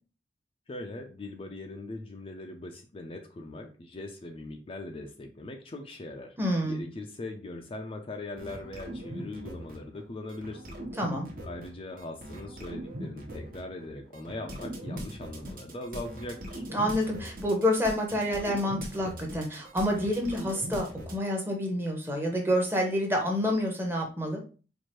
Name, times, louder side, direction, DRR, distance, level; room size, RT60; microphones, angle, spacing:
voice 1, 0.7-6.4 6.6-10.8 11.4-16.6, left 2 dB, 30° left, 3 dB, 0.4 m, -40 dB
voice 2, 6.4-6.8 11.0-11.3 16.7-24.4, equal, 15° right, 1 dB, 0.8 m, -28 dB
sound 1, 8.4-10.0 10.3-21.2, equal, 55° right, 1.0 m, -40 dB
4.5 x 2.5 x 3.0 m, 0.35 s
head